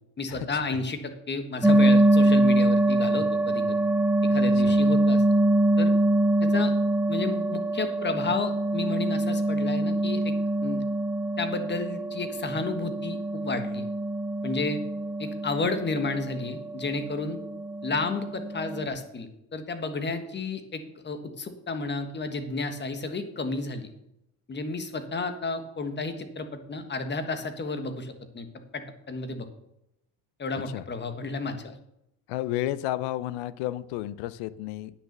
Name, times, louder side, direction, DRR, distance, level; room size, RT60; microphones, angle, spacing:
voice 1, 0.2-3.8 4.2-5.2 5.8-5.9 6.4-6.7 7.1-10.3 10.6-10.8 11.4-13.8 14.4-14.8 15.2-17.4 17.8-23.9 24.5-28.5 28.7-29.5 30.4-31.8, left 3 dB, 25° left, 8 dB, 1.4 m, -32 dB
sound 1, 1.6-18.9, right 1 dB, 5° right, 0.9 m, -24 dB
voice 2, 32.3-34.9, left 14 dB, 90° left, 17 dB, 0.7 m, -31 dB
9.7 x 6.7 x 6.7 m, 0.84 s
cardioid pair, 115°, 40 cm